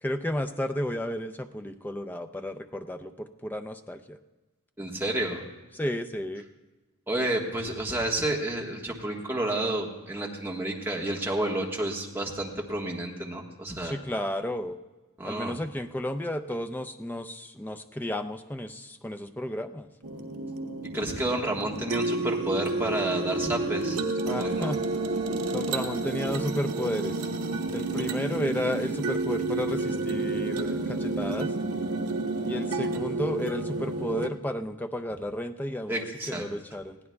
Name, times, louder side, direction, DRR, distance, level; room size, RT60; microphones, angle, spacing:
voice 1, 0.0-4.2 5.7-6.5 13.8-14.8 15.2-19.9 24.2-24.8 25.5-27.2 27.7-31.5 32.4-37.0, left 1 dB, 10° left, 6 dB, 0.4 m, -32 dB
voice 2, 4.8-5.4 7.1-13.9 15.2-15.5 20.9-24.0 24.4-24.7 35.9-36.4, right 1 dB, 10° right, -1 dB, 1.4 m, -30 dB
sound 1, 20.0-34.3, right 2 dB, 90° right, 0.9 m, -30 dB
20.5 x 15.5 x 2.3 m, 1.2 s
head